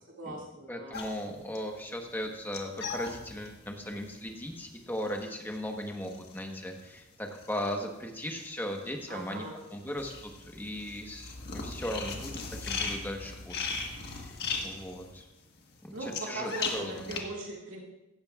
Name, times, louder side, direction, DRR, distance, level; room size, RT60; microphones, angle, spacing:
voice 1, 0.1-1.0 1.2-1.3 9.1-9.6 15.9-17.8, right 2 dB, 70° right, -3 dB, 2.4 m, -39 dB
voice 2, 0.7-9.4 9.7-14.4 14.6-15.3 15.8-17.2, equal, 10° left, 2 dB, 1.3 m, -38 dB
sound 1, 0.9-8.4 8.7-17.2, left 4 dB, 50° left, 1.5 m, -39 dB
16.5 x 13.5 x 2.5 m, 0.96 s
head